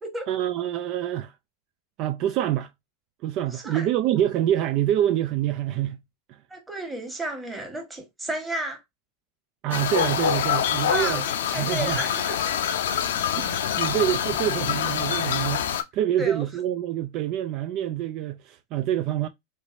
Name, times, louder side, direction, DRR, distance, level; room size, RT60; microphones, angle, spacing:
voice 1, 0.3-1.3 2.0-2.7 3.2-6.0 9.6-11.2 11.6-12.0 13.3-15.7 15.9-19.3, right 12 dB, 50° right, 0.3 m, -26 dB
voice 2, 3.4-3.9 6.5-8.8 10.9-12.5 16.2-16.4, right 1 dB, 10° right, 1.3 m, -33 dB
sound 1, 9.7-15.8, left 9 dB, 80° left, 0.5 m, -25 dB
3.1 x 3.1 x 2.5 m
hypercardioid pair, 115°, 0 cm